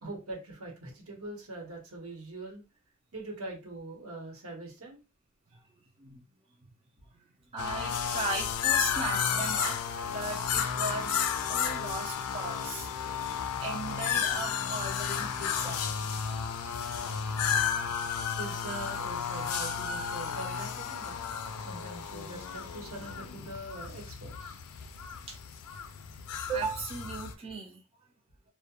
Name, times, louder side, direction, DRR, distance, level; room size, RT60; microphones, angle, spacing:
voice 1, 0.0-2.6 3.1-5.0 18.4-21.2 21.6-24.6, right 2 dB, 75° right, -1 dB, 1.0 m, -42 dB
voice 2, 7.5-9.8 10.1-12.9 13.6-15.8 16.8-17.1 25.3-25.4 26.5-27.8, right 3 dB, 25° right, 0 dB, 0.3 m, -37 dB
sound 1, 7.6-27.3, left 7 dB, 85° left, 0.4 m, -33 dB
2.3 x 2.1 x 2.8 m, 0.29 s
head